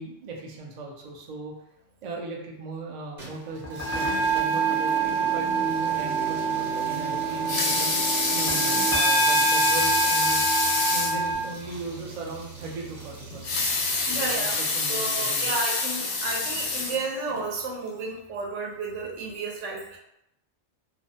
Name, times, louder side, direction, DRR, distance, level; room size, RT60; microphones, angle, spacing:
voice 1, 0.0-1.5 2.0-7.9 8.3-10.4 10.9-15.6, right 2 dB, 60° right, -1 dB, 0.4 m, -38 dB
sound 1, 3.2-14.9, right 1 dB, 45° right, 0.9 m, -40 dB
sound 2, 3.5-11.3, right 4 dB, 20° left, 0.4 m, -26 dB
Water tap faucet / Sink (filling or washing) / Liquid, 7.3-11.2 11.7-11.8 12.1-12.2 13.3-17.4 18.0-18.1, left 3 dB, 80° left, 0.9 m, -26 dB
voice 2, 14.1-14.6 14.9-20.0, right 3 dB, 80° right, -1 dB, 0.9 m, -32 dB
2.4 x 2.1 x 2.6 m, 0.82 s
omnidirectional pair, 1.2 m